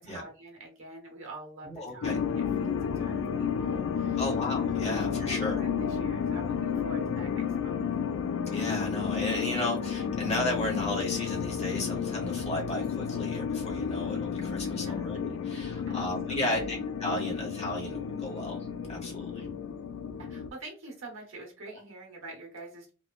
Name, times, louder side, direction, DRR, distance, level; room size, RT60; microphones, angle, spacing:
voice 1, 0.0-4.2 4.6-7.8 14.8-15.1 15.9-16.7 20.2-22.9, right 2 dB, 70° right, 0 dB, 1.1 m, -46 dB
voice 2, 1.6-2.2 4.2-5.6 8.5-18.6 18.9-19.5, left 1 dB, 30° left, -1 dB, 1.1 m, -34 dB
sound 1, 2.0-20.5, left 7 dB, 70° left, 0.3 m, -32 dB
3.1 x 2.1 x 2.3 m, 0.33 s
head